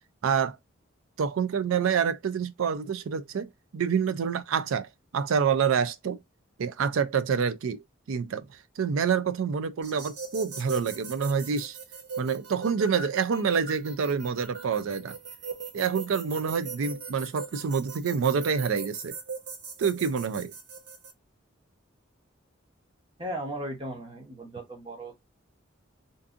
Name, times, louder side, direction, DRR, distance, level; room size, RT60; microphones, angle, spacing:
voice 1, 0.2-0.6 1.2-6.2 6.6-8.5 8.8-11.8 12.2-15.2 15.7-19.2 19.8-20.5, right 6 dB, 85° right, 0.4 m, -27 dB
sound 1, 9.8-21.1, right 4 dB, 60° right, 0.8 m, -40 dB
voice 2, 23.2-25.1, right 1 dB, 25° right, 0.7 m, -36 dB
2.6 x 2.5 x 2.4 m
head